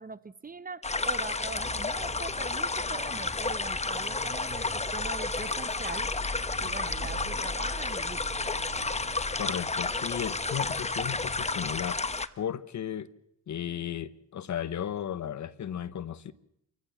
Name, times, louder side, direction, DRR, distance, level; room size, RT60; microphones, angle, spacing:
voice 1, 0.0-6.1 6.6-8.2, right 4 dB, 25° right, 0.9 m, -42 dB
sound 1, 0.8-12.3, left 3 dB, 20° left, 1.1 m, -31 dB
sound 2, 1.1-11.9, right 1 dB, 5° right, 4.8 m, -43 dB
voice 2, 9.4-12.0 12.4-13.1 13.5-16.3, left 9 dB, 55° left, 1.2 m, -35 dB
27.0 x 15.5 x 7.3 m
cardioid pair, 75°, 35 cm